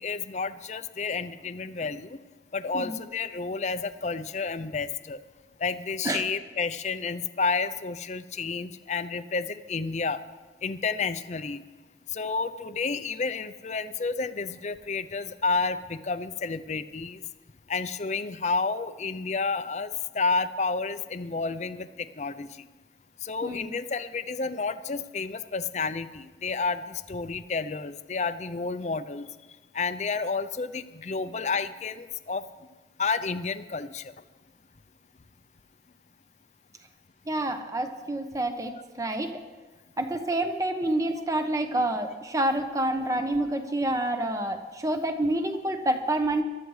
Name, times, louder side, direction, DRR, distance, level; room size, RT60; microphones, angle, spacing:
voice 1, 0.0-2.2 2.5-5.2 5.6-10.2 10.6-11.6 12.1-17.2 17.7-22.7 23.2-29.3 29.7-32.4 33.0-34.1, left 4 dB, 40° left, 12 dB, 0.5 m, -30 dB
voice 2, 23.4-23.7 37.3-39.4 40.0-46.4, right 1 dB, 20° right, 6 dB, 0.9 m, -28 dB
22.5 x 12.5 x 3.2 m, 1.3 s
head